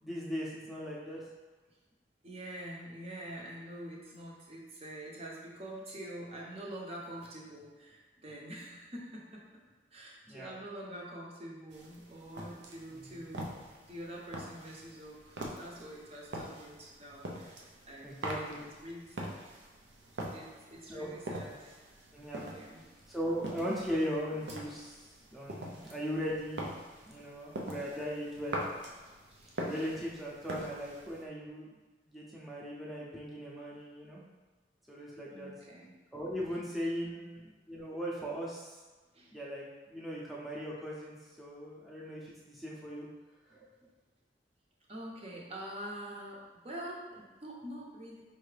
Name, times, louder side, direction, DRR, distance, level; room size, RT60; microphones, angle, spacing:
voice 1, 0.0-1.2 10.3-10.5 12.9-13.2 18.0-18.6 20.9-21.1 22.1-22.4 23.1-26.7 27.1-28.7 29.6-31.8 32.1-34.2 34.9-35.5 36.1-38.8 39.3-43.1 43.5-43.6, equal, ahead, -6 dB, 0.6 m, -38 dB
voice 2, 2.2-9.4 9.9-13.5 13.9-19.4 20.3-21.9 22.5-22.8 29.1-29.7 35.3-35.9 36.8-37.2 39.1-39.3 44.9-48.2, right 1 dB, 35° right, -3 dB, 0.7 m, -46 dB
sound 1, 11.7-31.2, right 1 dB, 85° right, 0.6 m, -44 dB
4.6 x 2.7 x 3.3 m, 1.3 s
head